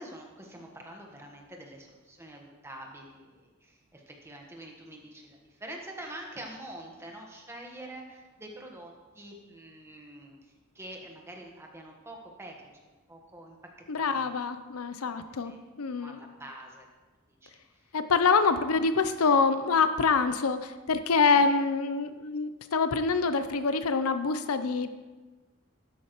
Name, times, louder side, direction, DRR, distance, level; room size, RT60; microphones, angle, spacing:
voice 1, 0.0-10.4 10.7-12.7 13.1-13.6 14.0-14.4 15.4-15.6 16.0-16.9 17.4-17.5 18.3-18.5 21.3-21.5, right 1 dB, 10° right, 1 dB, 1.3 m, -46 dB
voice 2, 13.9-15.5 15.8-16.2 17.9-24.9, left 4 dB, 90° left, 10 dB, 0.6 m, -25 dB
13.0 x 9.3 x 3.1 m, 1.2 s
head